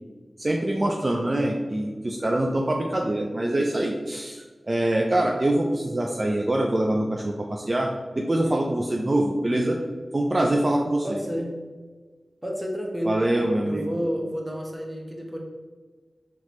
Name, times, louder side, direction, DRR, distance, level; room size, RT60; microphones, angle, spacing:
voice 1, 0.4-7.9 8.2-9.8 10.1-11.2 13.0-13.9, right 1 dB, 40° right, 0 dB, 0.4 m, -24 dB
voice 2, 11.0-11.5 12.4-13.1 13.6-15.4, equal, 15° right, -1 dB, 0.9 m, -30 dB
4.1 x 2.9 x 3.0 m, 1.4 s
cardioid pair, 45°, 0 cm